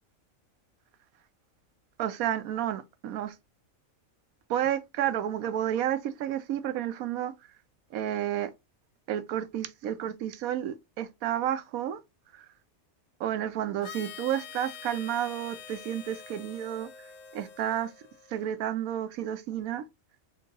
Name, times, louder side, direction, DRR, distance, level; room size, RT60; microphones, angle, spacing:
voice 1, 2.0-3.3 4.5-7.3 7.9-8.5 9.1-12.0 12.3-12.5 13.2-17.1 17.3-17.9 18.3-19.8, right 11 dB, 90° right, 1.1 m, -31 dB
Harmonica, 13.8-18.6, left 8 dB, 70° left, 1.0 m, -46 dB
4.0 x 2.6 x 3.8 m
omnidirectional pair, 1.4 m